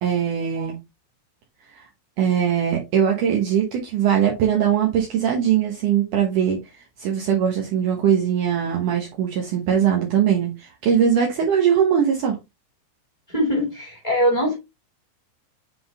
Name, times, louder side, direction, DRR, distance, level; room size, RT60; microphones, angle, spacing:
voice 1, 0.0-0.8 1.7-1.9 2.2-12.4, right 8 dB, 75° right, 1.8 m, -21 dB
voice 2, 13.3-14.6, equal, 20° left, 1.1 m, -22 dB
7.7 x 3.9 x 3.4 m
omnidirectional pair, 5.4 m